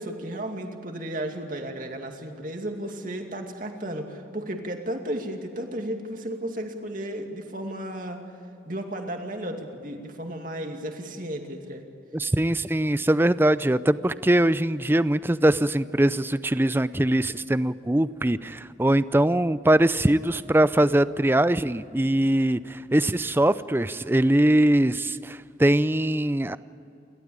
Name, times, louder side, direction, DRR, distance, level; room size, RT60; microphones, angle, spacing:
voice 1, 0.0-8.2 8.7-11.8, right 1 dB, 45° right, 3 dB, 2.5 m, -34 dB
voice 2, 12.1-26.6, right 1 dB, 10° right, 15 dB, 0.5 m, -22 dB
29.5 x 13.5 x 8.9 m, 2.8 s
head